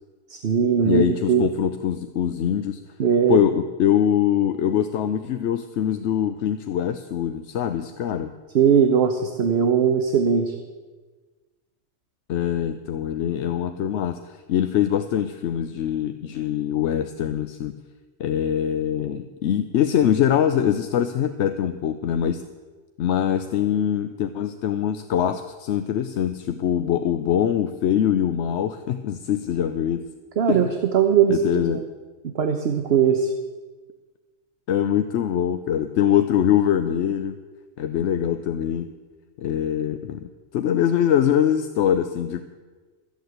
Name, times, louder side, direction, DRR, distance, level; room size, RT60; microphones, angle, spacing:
voice 1, 0.3-1.5 3.0-3.4 8.5-10.6 30.4-31.8 32.2-33.3, right 7 dB, 60° right, 6 dB, 1.1 m, -20 dB
voice 2, 0.8-2.8 3.3-8.3 12.3-17.8 18.2-22.4 23.0-30.0 30.5-30.6 31.3-31.8 34.7-37.4 37.8-38.9 39.4-42.4, left 10 dB, 80° left, 9 dB, 0.9 m, -23 dB
13.5 x 8.5 x 7.9 m, 1.3 s
omnidirectional pair, 1.2 m